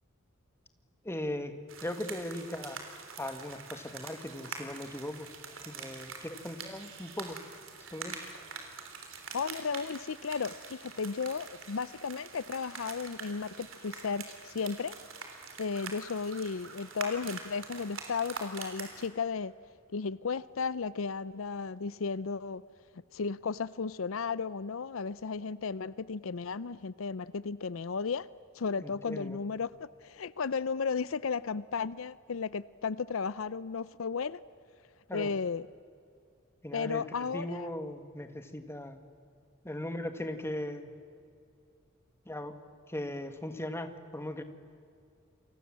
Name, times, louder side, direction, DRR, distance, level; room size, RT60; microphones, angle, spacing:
voice 1, 1.0-1.5 1.8-2.8 3.2-5.3 5.7-7.4 7.9-8.3 28.8-29.4 35.1-35.3 36.6-39.0 39.6-40.9 42.3-42.6 42.9-44.4, left 1 dB, 10° left, 8 dB, 1.7 m, -38 dB
rain drips on wet leaves, 1.7-19.1, right 5 dB, 70° right, 3.7 m, -45 dB
voice 2, 9.3-15.0 15.6-19.5 19.9-22.6 23.1-28.3 28.5-34.4 35.1-35.7 36.7-37.7, left 5 dB, 75° left, 18 dB, 0.6 m, -34 dB
29.5 x 24.5 x 7.5 m, 2.4 s
head